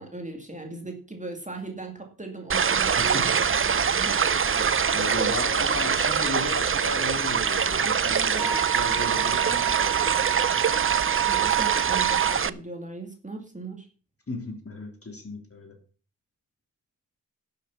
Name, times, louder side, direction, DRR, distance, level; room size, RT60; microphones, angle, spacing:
voice 1, 0.0-3.3 3.6-4.7 11.3-13.9, right 3 dB, 20° right, 2 dB, 2.4 m, -38 dB
sound 1, 2.5-12.5, right 6 dB, 40° right, 0.5 m, -24 dB
voice 2, 3.0-3.3 4.9-10.3 14.3-15.8, left 2 dB, 40° left, 2 dB, 3.6 m, -35 dB
Wind instrument woodwind instrument, 8.4-12.4, right 15 dB, 65° right, 1.2 m, -28 dB
11.5 x 6.8 x 7.1 m, 0.40 s
wide cardioid pair, 100°, 35 cm